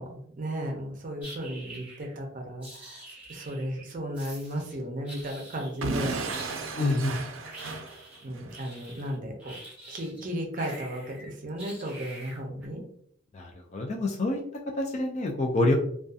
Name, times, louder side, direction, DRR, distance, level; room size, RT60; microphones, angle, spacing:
voice 1, 0.0-3.0 3.3-7.2 8.2-9.6 9.9-12.8, equal, 40° right, 2 dB, 0.5 m, -35 dB
sound 1, 1.2-2.2 2.6-3.9 4.1-4.8 5.1-5.9 6.3-10.2 10.5-12.7, right 1 dB, 5° right, 0.8 m, -46 dB
Explosion / Shatter, 5.8-8.6, right 3 dB, 90° right, 0.4 m, -33 dB
voice 2, 6.8-7.1 13.3-14.4 14.7-15.7, left 2 dB, 35° left, 0 dB, 0.3 m, -26 dB
2.6 x 2.3 x 2.3 m, 0.66 s
head